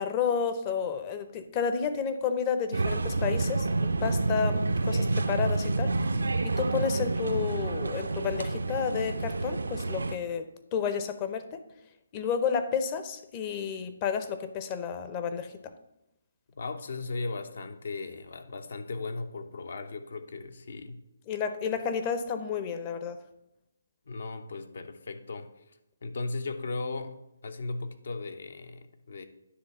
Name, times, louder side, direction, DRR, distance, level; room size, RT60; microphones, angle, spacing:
voice 1, 0.0-6.0 6.4-10.5 10.7-11.6 12.1-15.7 21.3-23.2, left 6 dB, 25° left, 9 dB, 0.6 m, -31 dB
sound 1, 2.7-10.2, right 3 dB, 85° right, 0.6 m, -28 dB
voice 2, 16.5-21.0 24.1-25.5 26.0-27.2 27.4-29.3, left 3 dB, 65° left, 9 dB, 0.8 m, -37 dB
9.7 x 3.4 x 6.6 m, 0.88 s
hypercardioid pair, 155°, 0 cm